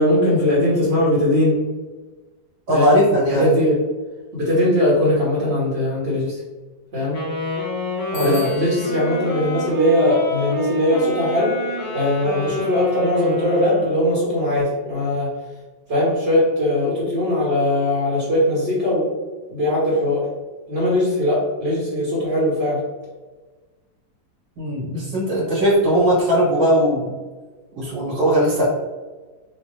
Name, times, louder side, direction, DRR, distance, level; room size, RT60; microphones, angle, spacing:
voice 1, 0.0-1.6 2.7-2.9 3.3-3.8 4.3-6.4 6.9-7.2 8.2-11.5 11.9-15.3 15.9-19.1 19.5-20.3 20.7-22.8, left 1 dB, 40° right, -7 dB, 1.1 m, -20 dB
voice 2, 2.7-3.5 8.1-8.4 24.6-27.1 27.8-28.6, equal, 70° right, -8 dB, 1.8 m, -18 dB
Wind instrument woodwind instrument, 7.1-14.1, left 2 dB, 45° left, 1.3 m, -28 dB
Bicycle bell, 8.1-9.1, left 4 dB, 70° left, 1.6 m, -37 dB
4.2 x 2.4 x 3.0 m, 1.3 s
omnidirectional pair, 2.1 m